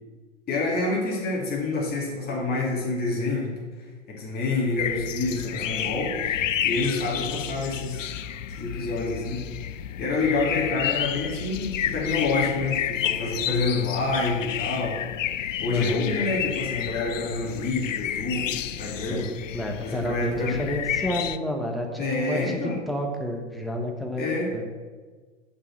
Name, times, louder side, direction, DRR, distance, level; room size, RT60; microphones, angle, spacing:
voice 1, 0.5-3.5 4.1-8.1 8.6-9.4 10.0-15.0 15.6-19.2 19.8-20.6 22.0-22.8 24.2-24.5, left 3 dB, 25° left, -3 dB, 2.4 m, -27 dB
sound 1, 4.8-21.4, left 10 dB, 85° left, 0.5 m, -31 dB
sound 2, 5.1-11.5, right 2 dB, 15° right, 2.7 m, -47 dB
voice 2, 15.7-16.0 19.1-24.6, equal, ahead, 1 dB, 1.0 m, -30 dB
6.8 x 5.6 x 7.4 m, 1.4 s
hypercardioid pair, 110°, 37 cm